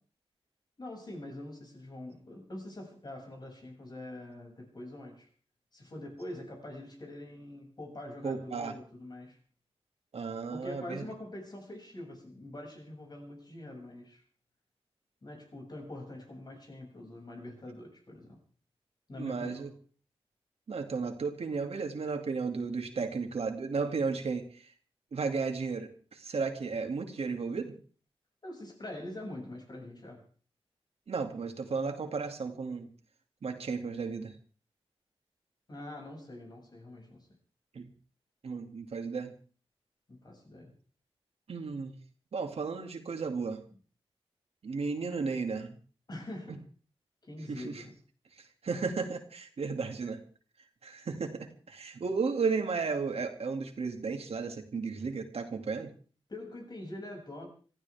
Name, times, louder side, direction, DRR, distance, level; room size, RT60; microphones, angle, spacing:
voice 1, 0.8-5.3 5.7-9.4 10.5-14.2 15.2-18.4 19.1-19.8 28.4-30.2 35.7-37.3 40.1-40.7 46.1-46.6 47.2-47.9 56.3-57.5, left 1 dB, 45° left, 6.8 m, -44 dB
voice 2, 8.2-8.7 10.1-11.0 19.2-19.7 20.7-24.6 25.1-27.7 31.1-32.9 33.4-34.3 37.7-37.9 38.4-39.3 41.5-42.0 42.3-43.6 44.6-45.7 47.5-47.8 48.6-50.2 50.8-55.9, right 4 dB, 75° right, 2.5 m, -34 dB
26.5 x 15.0 x 3.6 m
wide cardioid pair, 115°, 10 cm